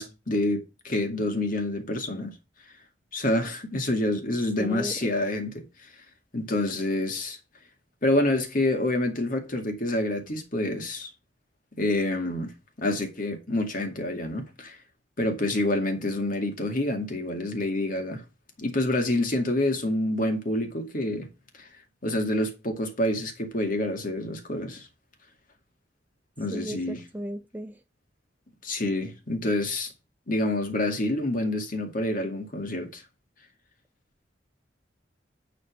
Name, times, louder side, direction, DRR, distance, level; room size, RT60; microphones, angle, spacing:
voice 1, 0.0-2.3 3.1-5.6 6.3-7.4 8.0-11.1 11.8-12.5 12.8-14.8 15.2-18.2 18.6-21.3 22.0-24.9 26.4-27.0 28.6-29.9 30.3-33.0, left 1 dB, 50° left, 2.2 m, -27 dB
voice 2, 4.6-4.9 26.5-27.8, equal, 10° right, 0.5 m, -35 dB
10.0 x 4.3 x 6.3 m
head